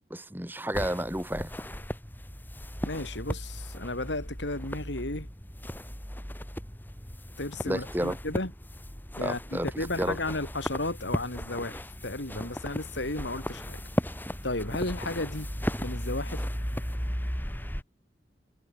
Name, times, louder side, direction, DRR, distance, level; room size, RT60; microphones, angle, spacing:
voice 1, 0.1-1.5 7.6-8.2 9.2-10.2, right 1 dB, 10° right, 2.8 m, -31 dB
sound 1, 0.7-17.8, equal, 10° left, 5.6 m, -36 dB
voice 2, 2.8-5.3 7.4-8.5 9.2-13.8 14.4-15.5 15.8-16.4, left 2 dB, 90° left, 4.5 m, -34 dB
head